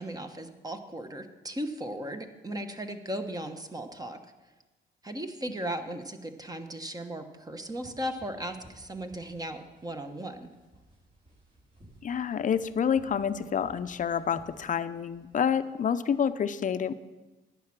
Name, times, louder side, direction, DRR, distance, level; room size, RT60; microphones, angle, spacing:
voice 1, 0.0-4.2 5.0-10.5, right 1 dB, 20° right, 7 dB, 1.1 m, -37 dB
sound 1, 7.5-16.3, right 1 dB, 45° right, 5.0 m, -58 dB
voice 2, 12.0-16.9, left 7 dB, 40° left, 12 dB, 0.6 m, -28 dB
11.5 x 8.6 x 6.0 m, 1.2 s
cardioid pair, 90°, 20 cm